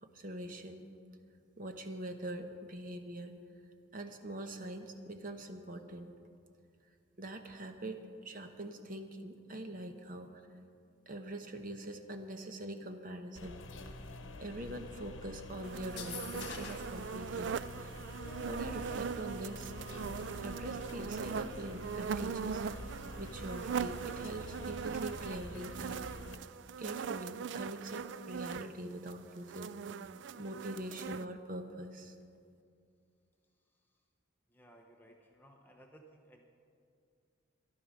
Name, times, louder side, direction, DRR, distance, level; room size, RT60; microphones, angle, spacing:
voice 1, 0.0-0.8 1.6-3.4 3.9-6.1 7.2-10.3 11.1-14.0 14.4-17.9 18.4-19.7 20.4-22.8 23.2-26.4 26.8-29.7 30.3-32.1, right 1 dB, 45° right, 6 dB, 1.0 m, -43 dB
sound 1, 13.4-26.4, left 2 dB, 75° left, 1.0 m, -47 dB
sound 2, 15.6-31.2, right 6 dB, 65° right, 0.3 m, -40 dB
sound 3, 15.8-17.0, left 6 dB, 55° left, 1.6 m, -45 dB
voice 2, 34.5-36.4, right 1 dB, 10° left, 1 dB, 0.7 m, -59 dB
13.5 x 11.5 x 6.2 m, 2.4 s
head